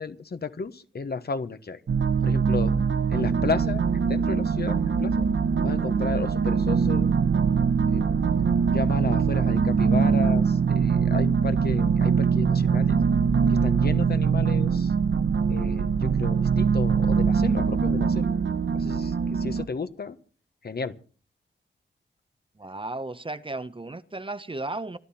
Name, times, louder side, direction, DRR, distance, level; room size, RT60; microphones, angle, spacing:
voice 1, 0.0-1.8 2.2-2.7 3.1-5.3 5.6-7.1 7.9-8.2 8.7-13.0 13.5-14.9 15.5-18.3 18.7-20.2 20.6-20.9, left 4 dB, 55° left, 1.3 m, -33 dB
sound 1, 1.9-19.6, right 6 dB, 70° right, 1.1 m, -23 dB
voice 2, 22.6-25.0, right 2 dB, 25° right, 0.9 m, -34 dB
25.5 x 11.5 x 4.4 m
cardioid pair, 70°, 20 cm